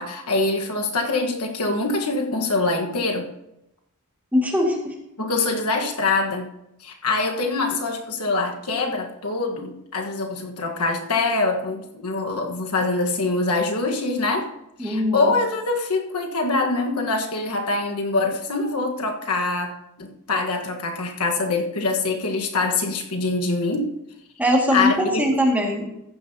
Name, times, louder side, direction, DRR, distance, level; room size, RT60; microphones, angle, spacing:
voice 1, 0.0-3.3 5.2-6.5 6.8-14.5 14.8-23.9 24.7-25.2, left 3 dB, 75° left, 2 dB, 1.4 m, -24 dB
voice 2, 4.3-4.9 14.8-15.3 24.4-24.9 25.2-25.9, left 1 dB, 5° right, -1 dB, 2.0 m, -21 dB
14.5 x 10.0 x 2.8 m, 0.85 s
head